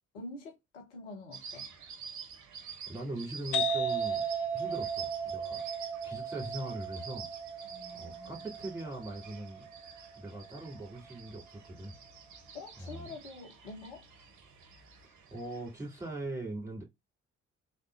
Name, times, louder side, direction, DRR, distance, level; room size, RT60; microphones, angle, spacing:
voice 1, 0.1-1.7 7.6-8.5 12.5-14.1, left 2 dB, 75° left, 1.1 m, -46 dB
sound 1, 1.3-16.1, right 6 dB, 50° right, 0.9 m, -49 dB
voice 2, 2.9-4.3 4.5-5.6 6.0-7.3 8.0-9.7 10.2-11.9 12.8-13.1 15.0-16.8, right 2 dB, 10° right, 2.6 m, -41 dB
sound 2, 3.5-11.0, right 4 dB, 55° left, 0.8 m, -36 dB
3.6 x 2.7 x 2.5 m
figure-of-eight pair, 45°, 37 cm